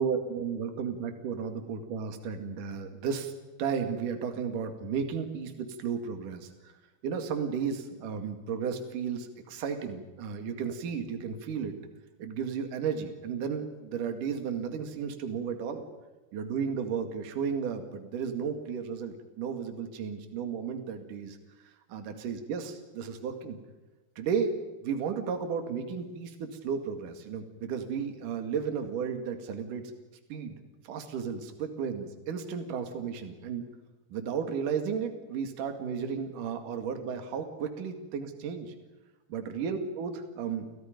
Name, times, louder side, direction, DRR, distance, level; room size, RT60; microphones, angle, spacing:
voice 1, 0.0-3.3 3.6-6.7 7.0-11.8 12.2-15.8 16.3-21.4 21.9-23.6 24.2-24.5 24.8-29.8 30.3-30.6 30.9-33.7 34.1-38.7 39.3-40.7, right 6 dB, 55° right, 6 dB, 3.5 m, -33 dB
29.5 x 28.0 x 5.3 m, 1.1 s
omnidirectional pair, 4.8 m